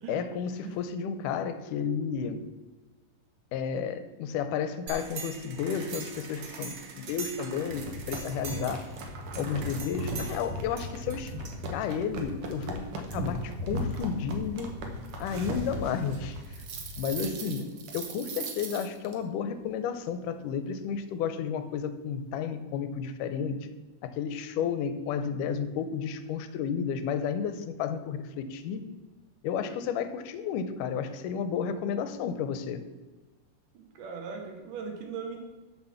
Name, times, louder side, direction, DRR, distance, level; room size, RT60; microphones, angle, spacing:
voice 1, 0.1-2.4 3.5-8.8 9.4-11.3 11.7-14.8 15.2-16.4 17.0-17.6 17.9-23.6 24.2-28.8 29.4-32.8, left 7 dB, 80° left, 10 dB, 2.1 m, -32 dB
sound 1, 4.9-19.1, right 1 dB, 60° right, 1.6 m, -37 dB
voice 2, 17.2-17.7 33.7-35.4, right 5 dB, 75° right, 2 dB, 3.0 m, -39 dB
7.0 x 6.1 x 7.0 m, 1.3 s
omnidirectional pair, 3.9 m